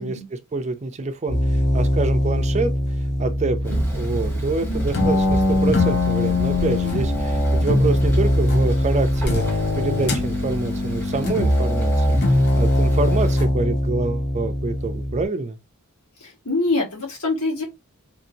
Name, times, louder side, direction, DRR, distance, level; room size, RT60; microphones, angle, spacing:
voice 1, 0.0-2.7 3.2-12.2 12.6-15.6, right 3 dB, 30° right, 0.4 m, -26 dB
sound 1, 1.3-15.2, left 1 dB, 50° left, 0.7 m, -21 dB
Thunder, 3.6-13.4, right 1 dB, 10° left, 1.0 m, -31 dB
voice 2, 16.2-17.6, left 2 dB, 75° left, 1.4 m, -25 dB
2.8 x 2.7 x 2.7 m
head